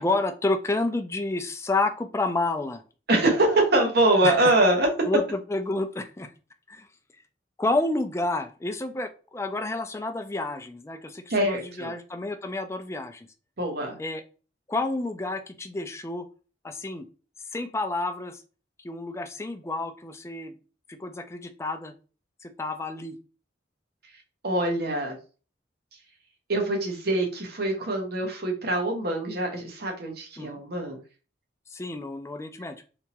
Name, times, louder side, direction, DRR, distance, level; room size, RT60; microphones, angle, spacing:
voice 1, 0.0-2.8 4.2-4.5 5.0-6.3 6.7-6.9 7.6-13.3 14.0-14.2 14.7-16.3 16.6-17.0 17.5-18.4 18.8-20.5 20.9-21.9 22.4-23.2 30.4-30.6 31.7-32.7, left 2 dB, 15° left, 7 dB, 0.4 m, -30 dB
voice 2, 3.1-4.9 11.3-11.9 13.6-14.0 24.4-25.2 26.5-31.0, right 1 dB, 60° right, 2 dB, 1.0 m, -24 dB
3.4 x 2.9 x 2.8 m, 0.36 s
head